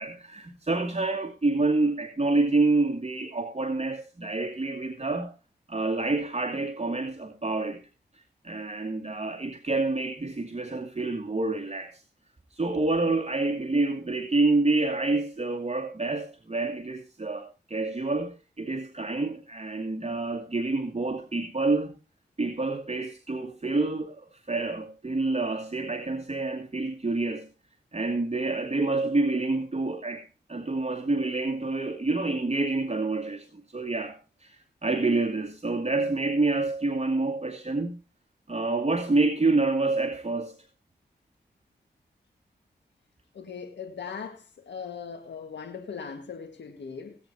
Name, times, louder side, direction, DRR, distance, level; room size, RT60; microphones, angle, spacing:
voice 1, 0.0-5.3 5.7-7.8 8.1-12.0 12.5-21.9 22.4-27.5 27.9-38.0 38.5-40.5, right 3 dB, 35° right, 2.3 m, -28 dB
voice 2, 43.3-47.2, left 6 dB, 90° left, 1.6 m, -39 dB
18.5 x 9.1 x 2.8 m
cardioid pair, 45°, 18 cm